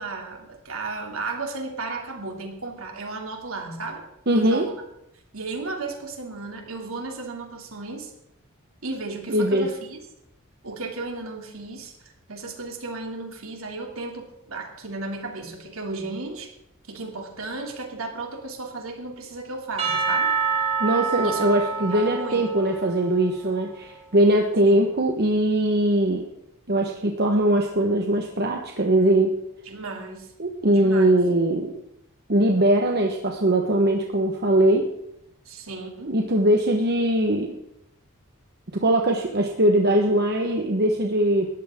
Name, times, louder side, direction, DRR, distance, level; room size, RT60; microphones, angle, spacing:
voice 1, 0.0-4.0 4.3-4.7 5.3-8.1 8.8-10.0 10.6-16.5 16.9-20.3 21.2-21.4 21.9-22.4 24.7-24.8 29.6-30.3 30.7-31.1 35.4-36.2, right 3 dB, 70° right, 2 dB, 2.9 m, -34 dB
voice 2, 4.3-4.7 9.3-9.7 20.8-26.3 26.7-29.3 30.4-31.7 32.3-34.9 36.1-37.6 38.7-41.5, right 1 dB, 50° right, 2 dB, 1.3 m, -21 dB
Percussion / Church bell, 19.8-24.0, right 6 dB, 30° right, 3.5 m, -27 dB
20.0 x 14.0 x 3.8 m, 0.80 s
head